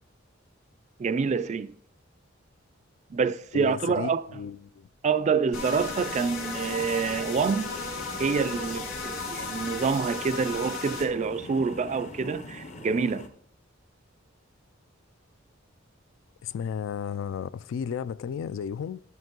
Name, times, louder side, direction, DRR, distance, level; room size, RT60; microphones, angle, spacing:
voice 1, 1.0-1.7 3.1-4.2 5.0-7.7 8.2-13.3, right 5 dB, 35° right, 0.3 m, -27 dB
voice 2, 3.5-4.9 16.4-19.0, left 7 dB, 70° left, 0.3 m, -33 dB
sound 1, 5.5-11.1, left 4 dB, 90° left, 2.0 m, -35 dB
sound 2, 5.5-13.3, left 2 dB, 35° left, 0.8 m, -42 dB
12.5 x 5.2 x 3.8 m
head